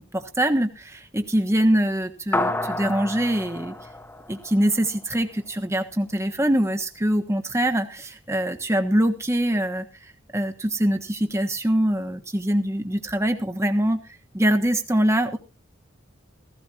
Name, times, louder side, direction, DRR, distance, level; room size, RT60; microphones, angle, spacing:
voice 1, 0.0-3.7 4.3-9.9 10.3-14.0 14.3-15.4, right 1 dB, 15° right, 6 dB, 1.3 m, -23 dB
sound 1, 2.3-5.0, left 1 dB, 10° left, 1.0 m, -29 dB
16.5 x 16.0 x 2.9 m, 0.31 s
head